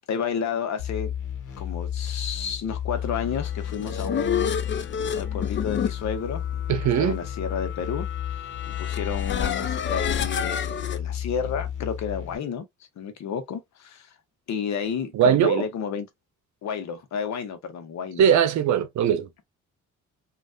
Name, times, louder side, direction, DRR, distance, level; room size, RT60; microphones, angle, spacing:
voice 1, 0.1-1.1 1.6-4.9 5.2-6.4 7.0-8.1 8.8-12.6 13.0-14.1 14.5-16.1 16.6-18.2, left 7 dB, 65° left, 0.9 m, -31 dB
sound 1, 0.8-12.4, left 10 dB, 85° left, 1.1 m, -32 dB
sound 2, 3.5-11.0, left 8 dB, 40° left, 0.5 m, -30 dB
voice 2, 6.7-7.2 15.1-15.7 18.2-19.4, right 8 dB, 70° right, 0.7 m, -20 dB
3.2 x 2.5 x 2.5 m
cardioid pair, 90°, 30 cm